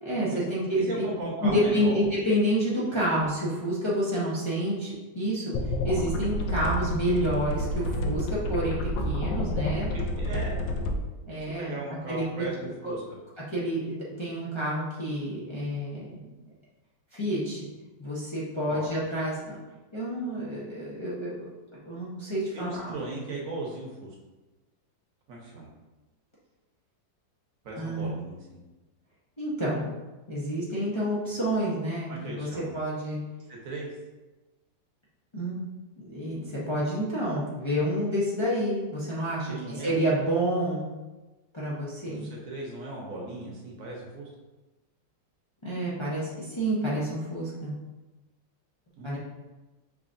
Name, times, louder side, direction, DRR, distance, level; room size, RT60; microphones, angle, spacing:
voice 1, 0.0-1.0 1.4-8.8 9.0-9.9 11.2-11.7 12.1-12.9 13.5-16.2 17.1-17.7 18.0-19.6 19.9-21.3 21.9-23.0 27.8-28.1 29.4-29.9 30.3-33.2 35.3-35.6 36.0-40.9 41.5-42.2 45.6-47.7 49.0-49.2, equal, 40° left, -8 dB, 0.4 m, -29 dB
voice 2, 0.8-2.0 2.9-3.0 9.9-10.6 11.4-13.0 18.7-18.9 22.5-24.1 25.3-25.7 27.6-28.6 32.1-32.7 33.5-33.9 39.5-40.4 42.0-44.3 49.0-49.2, right 2 dB, 55° right, -2 dB, 1.1 m, -37 dB
sound 1, 5.5-10.9, left 1 dB, 90° left, 1.3 m, -29 dB
5.7 x 3.2 x 2.5 m, 1.1 s
omnidirectional pair, 1.9 m